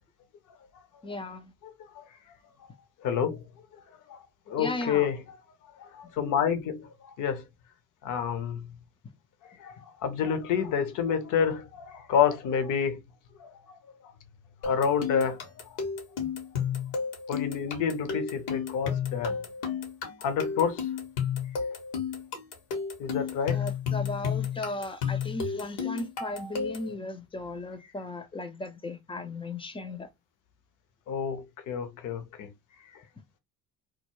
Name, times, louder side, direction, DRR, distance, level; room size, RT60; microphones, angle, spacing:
voice 1, 1.0-1.5 4.6-5.1 6.0-6.1 23.5-30.1, left 2 dB, 15° left, 0.4 m, -36 dB
voice 2, 1.6-2.0 3.0-3.4 4.1-5.2 5.8-7.4 8.0-8.7 9.6-13.0 13.4-13.8 14.6-15.5 17.3-19.4 20.2-20.9 23.0-23.6 31.1-32.5, left 7 dB, 50° left, 0.7 m, -29 dB
sound 1, 14.6-26.9, left 7 dB, 70° left, 1.0 m, -32 dB
2.3 x 2.0 x 3.0 m
hypercardioid pair, 65°, 40 cm